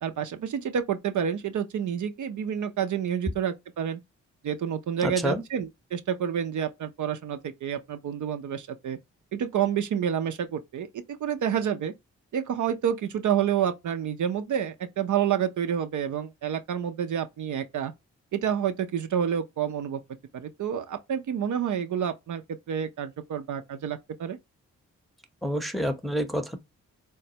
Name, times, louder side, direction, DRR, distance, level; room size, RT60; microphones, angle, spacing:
voice 1, 0.0-4.0 4.4-9.0 9.3-11.9 12.3-17.9 18.3-20.0 20.3-22.4 22.7-24.4, right 8 dB, 60° right, 0.6 m, -29 dB
voice 2, 5.0-5.4 25.4-26.6, equal, ahead, 0.8 m, -28 dB
3.8 x 2.1 x 2.8 m
supercardioid pair, 45°, 35 cm